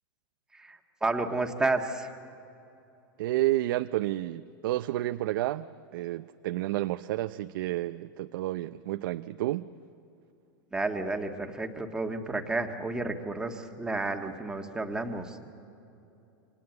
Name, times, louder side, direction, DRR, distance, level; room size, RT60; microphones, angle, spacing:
voice 1, 0.5-2.2 10.7-15.5, right 2 dB, 5° right, 1.5 m, -31 dB
voice 2, 3.2-5.7 5.9-9.7, right 15 dB, 65° right, 0.6 m, -30 dB
29.5 x 25.5 x 8.0 m
supercardioid pair, 150°, 12 cm